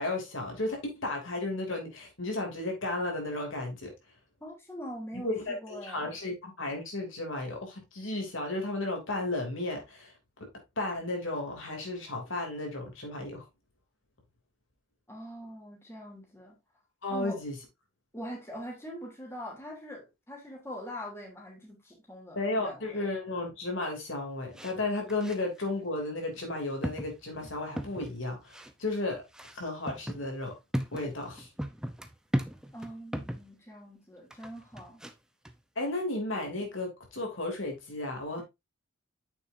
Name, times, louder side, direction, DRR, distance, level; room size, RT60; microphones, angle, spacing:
voice 1, 0.0-3.9 5.1-10.5 10.8-13.4 17.0-17.6 22.3-29.2 29.5-30.5 30.9-31.5 35.8-38.4, left 2 dB, 65° left, 3.0 m, -34 dB
voice 2, 4.4-6.1 15.1-16.5 17.1-17.4 18.1-23.0 32.7-35.0, equal, 10° left, 3.1 m, -43 dB
sound 1, 24.6-24.7 25.1-25.6 26.4-26.5 26.8-28.2 28.5-28.7 29.3-33.5 34.3-35.1 35.4-35.5, equal, 5° right, 0.7 m, -36 dB
9.1 x 6.9 x 2.7 m
head